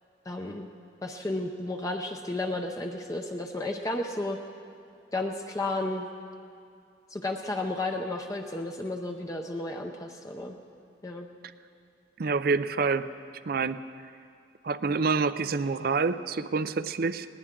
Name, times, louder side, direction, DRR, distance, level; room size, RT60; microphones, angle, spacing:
voice 1, 0.3-0.7 1.0-4.4 5.1-6.1 7.1-10.6 11.0-11.3, left 2 dB, 20° left, 2 dB, 0.6 m, -33 dB
voice 2, 12.2-13.1 13.5-13.8 14.6-17.3, right 4 dB, 50° right, 13 dB, 0.5 m, -27 dB
19.5 x 19.0 x 3.8 m, 2.4 s
head